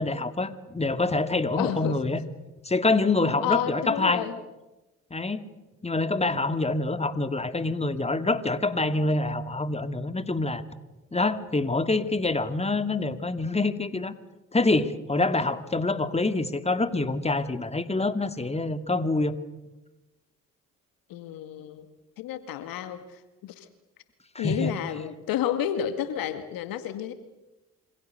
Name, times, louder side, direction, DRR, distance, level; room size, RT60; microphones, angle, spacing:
voice 1, 0.0-2.2 2.6-4.2 5.1-5.4 5.8-10.6 11.1-14.1 14.5-19.4 24.3-24.7, left 2 dB, 20° left, 10 dB, 2.3 m, -26 dB
voice 2, 1.5-2.0 3.4-4.3 21.1-21.9 22.2-23.7 24.4-27.1, left 10 dB, 70° left, 10 dB, 2.1 m, -31 dB
27.5 x 26.5 x 6.8 m, 1.0 s
hypercardioid pair, 45°, 35 cm